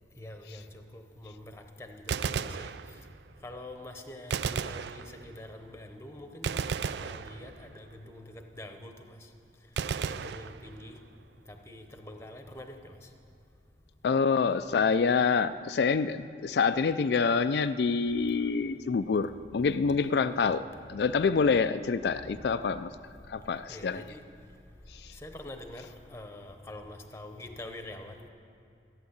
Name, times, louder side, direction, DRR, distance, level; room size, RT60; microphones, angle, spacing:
voice 1, 0.2-2.7 3.4-6.6 7.0-9.1 10.1-10.9 11.5-13.0 23.7-24.2 25.1-28.3, left 1 dB, 15° left, 5 dB, 0.8 m, -45 dB
Gunshot gunfire, 2.0-3.3 4.3-5.5 6.4-7.9 9.8-11.1, right 6 dB, 70° right, 0.4 m, -34 dB
voice 2, 14.0-20.6 20.9-22.9 23.3-24.0 24.9-25.1, left 5 dB, 65° left, 13 dB, 0.4 m, -26 dB
14.5 x 9.3 x 8.1 m, 2.5 s
head